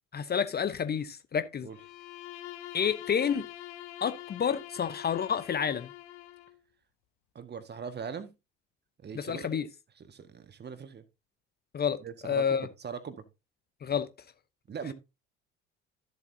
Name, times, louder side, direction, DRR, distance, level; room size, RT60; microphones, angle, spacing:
voice 1, 0.1-1.7 2.7-3.4 4.0-5.9 9.1-9.7 11.7-12.7 13.8-14.1, left 7 dB, 30° left, 0.9 m, -29 dB
Bowed string instrument, 1.7-6.6, left 14 dB, 55° left, 1.2 m, -45 dB
voice 2, 7.3-8.3 9.0-9.6 10.0-11.0 12.0-13.2 14.7-14.9, right 6 dB, 30° right, 1.8 m, -41 dB
13.5 x 7.6 x 2.8 m
figure-of-eight pair, 55°, 34 cm